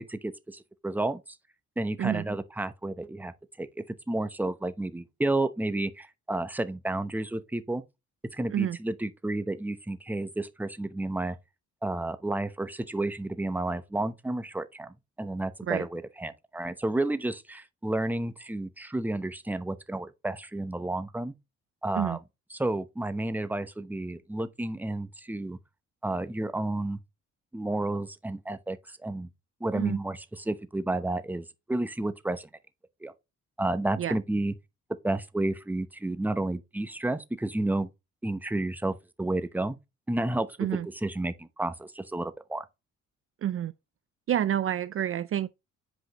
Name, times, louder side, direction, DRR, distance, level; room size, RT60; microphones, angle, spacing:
voice 1, 0.0-1.4 1.8-3.3 3.6-3.7 4.1-7.8 8.3-11.4 11.8-21.3 21.8-22.2 22.5-25.6 26.0-27.0 27.5-29.3 29.6-32.5 33.0-33.1 33.6-34.5 35.0-37.9 38.2-39.8 40.1-42.6, right 2 dB, 5° right, 0.8 m, -31 dB
voice 2, 43.4-43.7 44.3-45.5, right 10 dB, 45° right, 0.5 m, -28 dB
8.1 x 5.0 x 2.9 m
cardioid pair, 90°, 30 cm